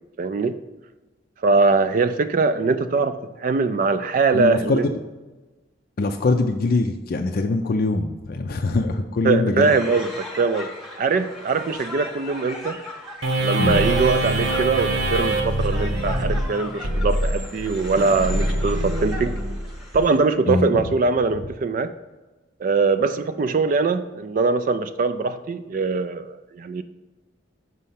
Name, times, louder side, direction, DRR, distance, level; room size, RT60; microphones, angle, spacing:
voice 1, 0.2-0.6 1.4-4.9 9.2-12.8 13.4-19.4 19.9-21.9 22.6-26.8, right 4 dB, 45° right, 10 dB, 0.3 m, -22 dB
voice 2, 4.3-5.0 6.0-9.8 13.6-14.0 20.5-20.8, left 3 dB, 50° left, 4 dB, 0.4 m, -23 dB
sound 1, 9.6-20.2, left 2 dB, ahead, 0.9 m, -38 dB
sound 2, 13.2-20.0, right 1 dB, 85° right, 1.1 m, -24 dB
6.2 x 5.5 x 5.7 m, 1.2 s
head